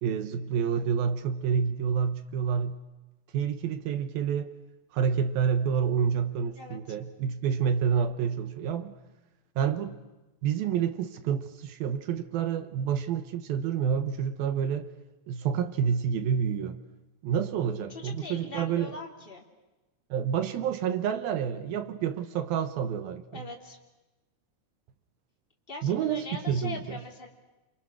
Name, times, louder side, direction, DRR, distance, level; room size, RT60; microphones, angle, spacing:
voice 1, 0.0-2.8 3.3-4.5 4.9-8.9 9.6-10.0 10.4-14.9 15.3-16.8 17.2-19.0 20.1-23.5 25.8-27.0, right 7 dB, 70° right, 2.5 m, -28 dB
voice 2, 17.9-19.4 23.3-23.8 25.7-27.3, left 3 dB, 15° left, 2.4 m, -41 dB
29.0 x 26.0 x 6.2 m
omnidirectional pair, 5.1 m